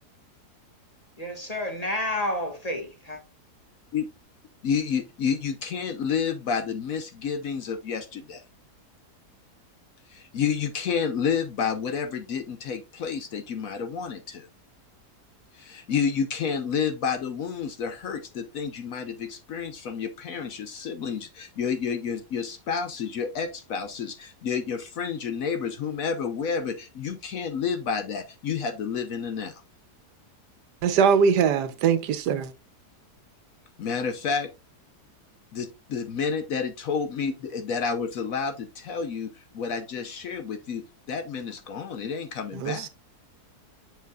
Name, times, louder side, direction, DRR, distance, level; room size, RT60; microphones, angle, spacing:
voice 1, 1.2-3.2, left 1 dB, 25° left, 1.7 m, -30 dB
voice 2, 4.6-8.4 10.1-14.5 15.5-29.6 33.8-34.5 35.5-42.9, left 6 dB, 65° left, 1.0 m, -30 dB
voice 3, 30.8-32.5 42.6-42.9, right 7 dB, 80° right, 1.3 m, -22 dB
7.4 x 5.8 x 2.3 m
omnidirectional pair, 1.8 m